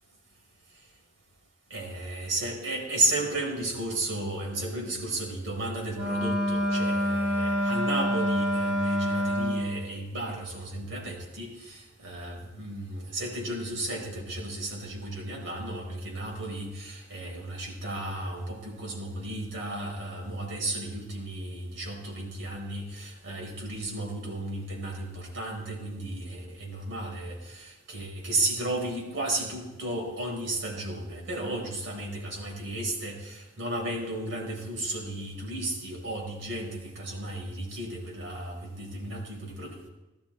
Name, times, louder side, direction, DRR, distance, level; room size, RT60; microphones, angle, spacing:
voice 1, 1.7-39.9, right 2 dB, 80° right, -1 dB, 4.4 m, -34 dB
Wind instrument woodwind instrument, 5.9-9.8, left 1 dB, 5° right, 3.8 m, -27 dB
18.0 x 12.5 x 4.4 m, 1.0 s
head